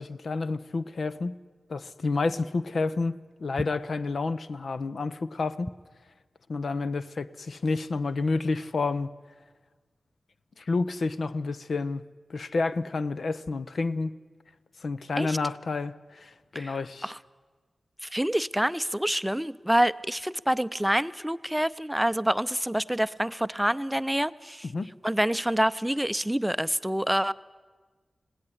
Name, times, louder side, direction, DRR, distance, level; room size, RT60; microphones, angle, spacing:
voice 1, 0.0-1.4 1.7-5.7 6.5-9.1 10.6-12.0 12.3-14.1 14.8-17.1 24.7-24.9, left 3 dB, 75° left, 14 dB, 0.8 m, -29 dB
voice 2, 18.0-24.7 25.0-27.3, right 1 dB, 5° right, 15 dB, 0.6 m, -27 dB
20.0 x 17.0 x 10.0 m, 1.4 s
cardioid pair, 50°, 0 cm